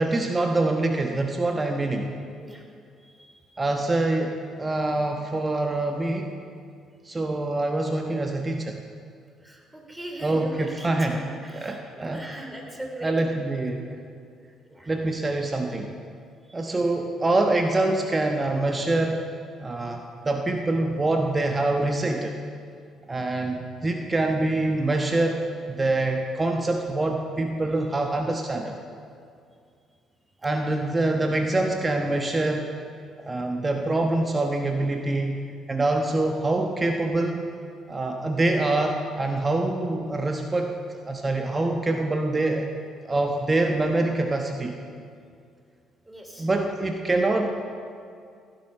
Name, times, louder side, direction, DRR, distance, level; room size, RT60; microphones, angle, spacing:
voice 1, 0.0-2.1 3.6-6.4 7.0-8.8 10.2-11.2 11.5-12.5 13.0-14.0 14.9-15.9 16.5-19.3 19.6-22.4 23.1-25.4 25.7-28.8 30.4-32.7 33.2-35.4 35.7-37.5 37.9-40.7 41.1-42.7 43.0-44.8 46.4-47.5, right 2 dB, 25° right, 3 dB, 1.2 m, -25 dB
voice 2, 3.0-3.5 9.4-13.3 14.6-14.9 16.4-16.6 30.4-30.9 46.1-46.5, right 1 dB, 10° right, 1 dB, 3.5 m, -40 dB
16.0 x 11.0 x 5.6 m, 2.3 s
hypercardioid pair, 50°, 0 cm